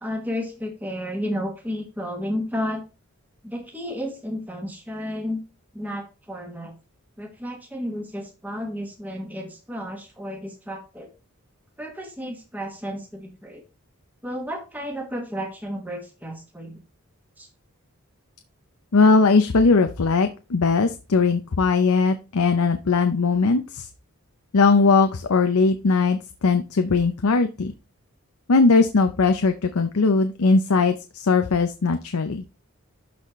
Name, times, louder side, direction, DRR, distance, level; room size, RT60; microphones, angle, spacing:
voice 1, 0.0-2.8 3.4-5.4 5.7-6.7 7.2-11.1 11.8-13.6 14.2-16.8 17.4-17.5, equal, 10° right, 2 dB, 1.5 m, -32 dB
voice 2, 18.9-23.9 24.5-27.7 28.5-32.4, left 4 dB, 80° left, 8 dB, 0.6 m, -19 dB
12.0 x 4.2 x 3.1 m, 0.31 s
head